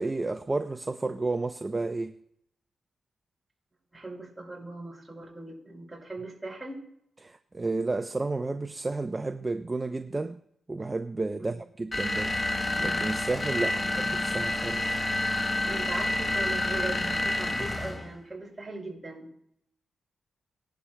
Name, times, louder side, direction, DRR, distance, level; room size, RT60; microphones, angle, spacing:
voice 1, 0.0-2.1 7.2-10.4 10.7-12.3 12.8-13.7 14.1-15.0, right 3 dB, 25° right, 0.5 m, -31 dB
voice 2, 3.9-6.8 11.4-11.6 13.6-13.9 15.6-19.3, right 2 dB, 10° right, 5.6 m, -39 dB
sound 1, 11.9-18.1, left 2 dB, 25° left, 0.9 m, -29 dB
19.5 x 11.5 x 2.2 m
cardioid pair, 90°, 0 cm